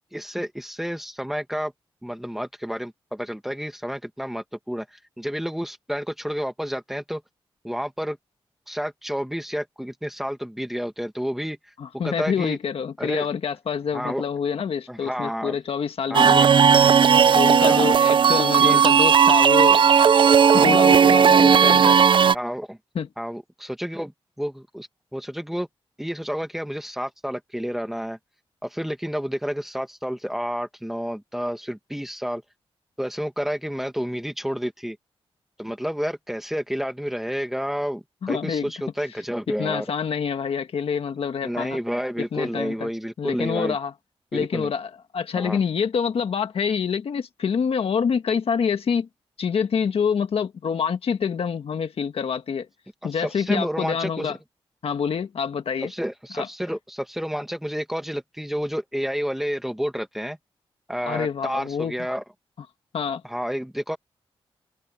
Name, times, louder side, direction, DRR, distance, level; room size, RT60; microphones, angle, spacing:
voice 1, 0.1-1.7 2.0-7.2 7.6-8.2 8.7-11.6 12.0-12.6 13.0-13.3 13.9-14.2 14.9-15.6 16.1-16.3 17.6-17.9 18.6-18.9 20.5-20.8 21.6-21.8 22.2-22.8 23.2-24.1 24.4-25.7 26.0-28.2 28.6-32.4 33.0-35.0 35.6-39.9 41.4-43.8 44.3-44.7 45.3-45.6 53.2-54.4 55.8-60.4 60.9-62.2 63.2-64.0, equal, 5° right, 1.9 m, -30 dB
voice 2, 11.8-16.5 17.3-19.8 20.5-22.0 22.9-23.1 38.2-38.7 39.6-41.8 42.3-42.9 43.2-43.9 44.3-49.1 49.4-52.7 53.0-54.4 54.8-55.9 56.3-56.5 61.1-61.9 62.9-63.2, left 6 dB, 75° left, 1.6 m, -26 dB
sound 1, 16.1-22.3, right 7 dB, 55° right, 0.5 m, -15 dB
wide cardioid pair, 125°, 10 cm